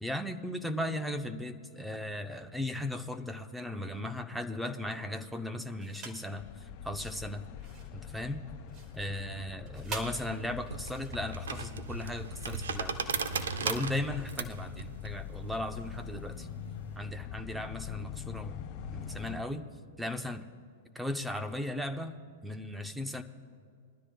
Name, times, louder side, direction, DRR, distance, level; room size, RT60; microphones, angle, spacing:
voice 1, 0.0-7.5 7.9-8.4 8.9-13.0 13.6-16.5 17.0-18.6 18.9-19.7 20.0-20.4 20.9-22.1 22.4-23.2, left 1 dB, 5° right, 8 dB, 0.7 m, -37 dB
sound 1, 5.8-6.3 6.8-14.7, right 4 dB, 30° right, 2.0 m, -48 dB
sound 2, 6.4-19.4, left 9 dB, 45° left, 2.3 m, -43 dB
sound 3, 10.2-16.9, right 6 dB, 90° right, 0.9 m, -37 dB
22.0 x 13.0 x 2.3 m, 2.2 s
hypercardioid pair, 130°, 0 cm